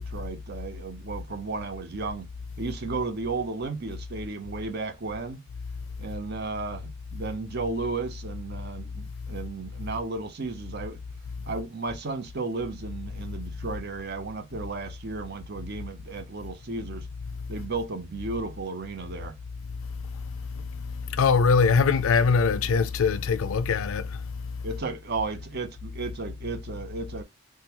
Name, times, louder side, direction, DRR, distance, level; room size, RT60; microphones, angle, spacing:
voice 1, 0.0-2.3 2.6-5.4 6.0-11.0 11.5-17.1 17.5-19.4 24.6-27.2, right 3 dB, 50° right, 0.7 m, -34 dB
voice 2, 20.5-24.3, left 5 dB, 75° left, 0.4 m, -23 dB
3.6 x 2.2 x 2.9 m
head